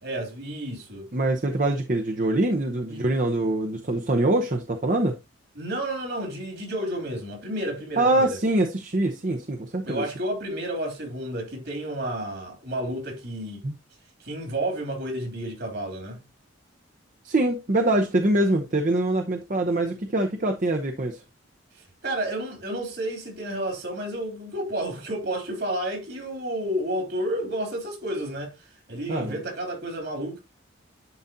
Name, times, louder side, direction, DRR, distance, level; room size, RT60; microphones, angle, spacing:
voice 1, 0.0-1.1 2.9-3.1 5.5-8.4 9.9-13.6 14.2-16.2 21.7-30.4, right 1 dB, 60° right, 3.0 m, -31 dB
voice 2, 1.1-5.2 8.0-10.0 13.6-13.7 17.2-21.2 29.1-29.4, right 2 dB, 45° right, 0.8 m, -24 dB
11.0 x 4.0 x 2.7 m
head